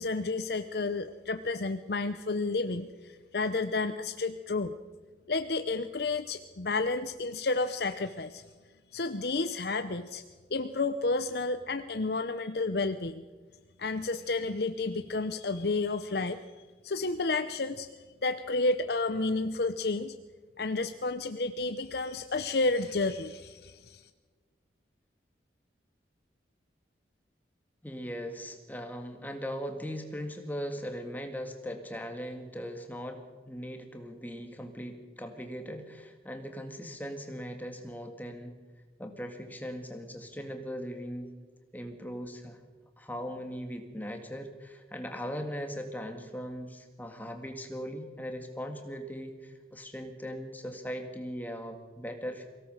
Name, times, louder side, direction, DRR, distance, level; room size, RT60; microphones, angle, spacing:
voice 1, 0.0-4.7 5.3-8.4 8.9-10.2 10.5-13.2 13.8-17.9 18.2-20.1 20.6-24.1, left 3 dB, 60° left, 9 dB, 0.7 m, -31 dB
voice 2, 27.8-38.5 39.0-41.3 41.7-42.6 43.0-52.5, equal, 10° left, 5 dB, 1.9 m, -39 dB
24.0 x 17.0 x 6.6 m, 1.4 s
head